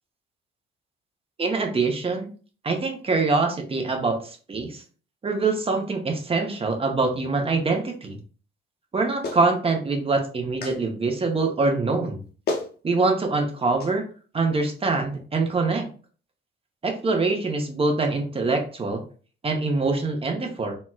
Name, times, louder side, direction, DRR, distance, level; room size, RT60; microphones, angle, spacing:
voice 1, 1.4-2.3 2.6-4.8 5.2-8.2 8.9-12.2 12.8-14.0 14.3-15.9 16.8-19.0 19.4-20.7, right 3 dB, 30° right, 3 dB, 0.8 m, -24 dB
Clapping, 9.2-9.5 10.6-10.8 12.0-12.1 12.5-12.7 13.8-13.9, left 3 dB, 55° left, 0.7 m, -29 dB
4.2 x 2.1 x 2.3 m, 0.39 s
cardioid pair, 90°, 20 cm